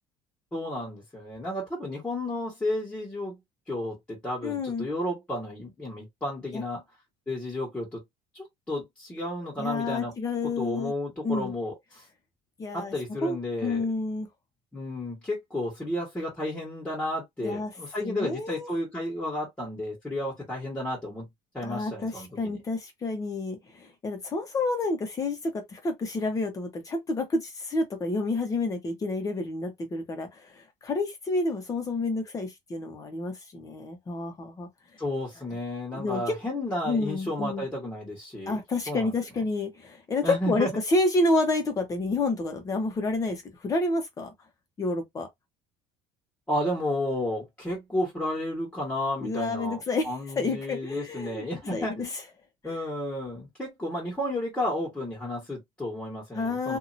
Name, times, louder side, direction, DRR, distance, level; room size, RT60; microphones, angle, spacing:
voice 1, 0.5-3.4 3.7-6.8 7.3-8.0 8.3-10.1 10.4-12.0 12.7-13.9 14.7-21.3 21.5-22.6 35.0-38.5 38.9-39.1 40.2-40.7 46.5-52.1 52.6-56.8, left 1 dB, 10° left, 1.6 m, -32 dB
voice 2, 4.4-4.9 6.5-6.6 9.6-10.9 11.2-11.5 12.6-12.9 13.2-13.4 13.6-14.3 17.4-17.7 18.0-18.7 21.6-34.7 35.9-36.3 36.8-37.6 38.5-44.3 44.8-45.3 49.2-50.1 50.4-51.4 51.7-52.1 52.6-52.8 56.3-56.8, left 2 dB, 25° left, 1.2 m, -29 dB
2.8 x 2.7 x 2.8 m
cardioid pair, 125°, 12 cm